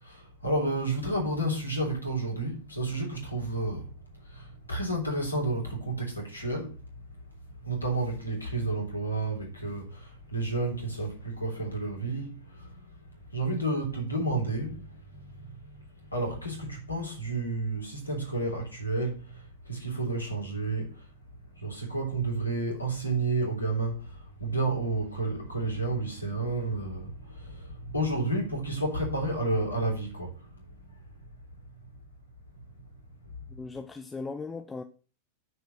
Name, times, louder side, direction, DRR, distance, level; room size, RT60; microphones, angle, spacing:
voice 1, 0.0-3.9 4.3-6.8 7.6-12.7 13.3-15.5 16.1-21.0 21.6-30.4, right 2 dB, 80° left, 3.6 m, -31 dB
voice 2, 33.5-34.8, left 4 dB, 15° left, 0.7 m, -38 dB
9.6 x 4.8 x 6.0 m
figure-of-eight pair, 90°, 0 cm